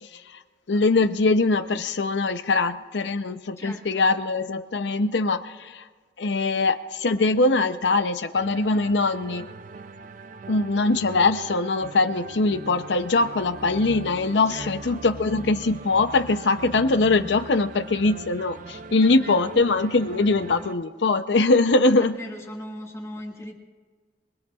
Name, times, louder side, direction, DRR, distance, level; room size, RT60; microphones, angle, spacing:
voice 1, 0.7-5.8 6.2-9.5 10.5-22.2, left 3 dB, 85° left, 10 dB, 0.7 m, -22 dB
voice 2, 3.6-4.0 14.5-15.0 19.0-19.5 22.0-23.5, left 1 dB, 15° left, 0 dB, 1.7 m, -38 dB
sound 1, 8.3-20.8, right 3 dB, 45° right, 0.4 m, -40 dB
25.0 x 20.5 x 2.4 m, 1.5 s
head